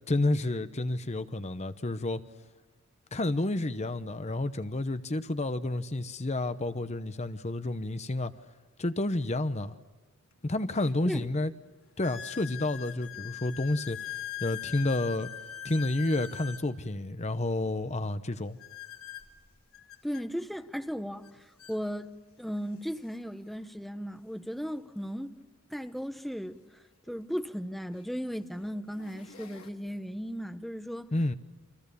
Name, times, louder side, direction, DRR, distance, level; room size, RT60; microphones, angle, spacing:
voice 1, 0.1-2.2 3.1-8.3 8.8-9.7 10.4-11.5 12.0-15.3 15.6-18.6 31.1-31.3, left 2 dB, 30° left, 0.9 m, -30 dB
sound 1, 10.3-10.4 11.0-11.1 12.0-16.7 18.6-20.2 21.2-21.3 21.6-21.8 22.6-22.7 24.9-25.0 27.1-27.2 27.9-28.2 28.7-29.7, left 11 dB, 70° left, 2.8 m, -42 dB
voice 2, 20.0-22.1 22.4-25.4 25.7-31.1, equal, ahead, 0.9 m, -36 dB
29.5 x 26.0 x 7.0 m
head